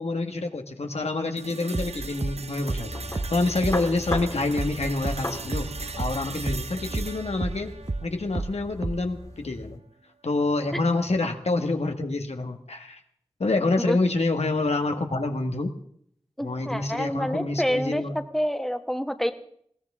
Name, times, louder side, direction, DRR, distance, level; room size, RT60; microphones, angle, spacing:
voice 1, 0.0-7.7 8.0-9.8 10.2-13.0 13.4-15.7 16.4-18.2, left 2 dB, 85° left, 5 dB, 1.5 m, -27 dB
sound 1, 1.4-9.4, right 4 dB, 85° right, 0.7 m, -40 dB
sound 2, 1.7-6.7 6.9-9.2, right 2 dB, 40° right, 0.7 m, -31 dB
sound 3, 2.8-9.8, left 1 dB, 30° left, 2.2 m, -38 dB
voice 2, 16.4-18.0 18.3-19.3, equal, 5° left, 7 dB, 1.3 m, -27 dB
20.5 x 17.0 x 3.7 m, 0.66 s
wide cardioid pair, 45°, 11 cm